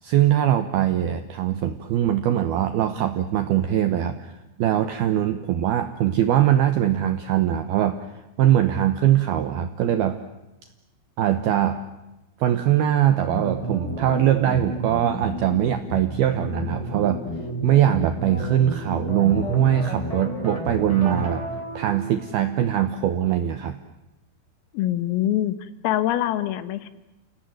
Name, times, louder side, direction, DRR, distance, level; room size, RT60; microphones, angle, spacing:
voice 1, 0.0-10.2 11.2-11.8 12.4-17.2 17.6-21.4 21.7-23.8, right 11 dB, 80° right, 10 dB, 2.2 m, -22 dB
sound 1, 13.3-22.9, right 1 dB, 5° left, 3.6 m, -32 dB
voice 2, 24.7-26.9, left 12 dB, 80° left, 13 dB, 4.0 m, -24 dB
29.5 x 17.5 x 9.3 m, 0.98 s
omnidirectional pair, 6.0 m